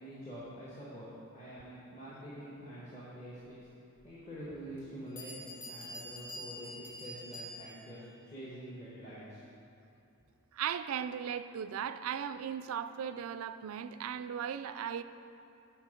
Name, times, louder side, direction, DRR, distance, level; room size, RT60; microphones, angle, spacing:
voice 1, 0.0-3.6 4.0-9.4, equal, 30° left, -8 dB, 1.2 m, -46 dB
Bell, 4.8-4.9 5.2-8.0, equal, 60° left, 1.5 m, -46 dB
voice 2, 10.5-15.0, right 8 dB, 75° right, 11 dB, 0.3 m, -37 dB
9.1 x 4.5 x 5.0 m, 2.6 s
head